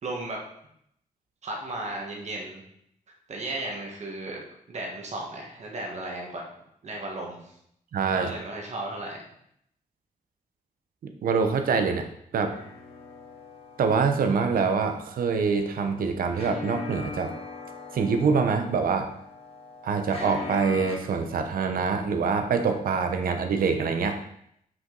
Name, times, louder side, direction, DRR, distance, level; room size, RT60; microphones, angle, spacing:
voice 1, 0.0-0.4 1.4-2.6 3.3-4.4 4.7-6.4 6.8-7.5 8.1-9.2, right 2 dB, 50° right, 0 dB, 1.5 m, -35 dB
voice 2, 7.9-8.3 11.0-12.1 12.3-12.5 13.8-17.3 17.9-19.1 19.8-24.2, right 5 dB, 80° right, 6 dB, 0.8 m, -25 dB
sound 1, 12.5-21.0, left 4 dB, 40° left, 1.4 m, -41 dB
5.8 x 5.3 x 3.9 m, 0.72 s
wide cardioid pair, 145°, 15 cm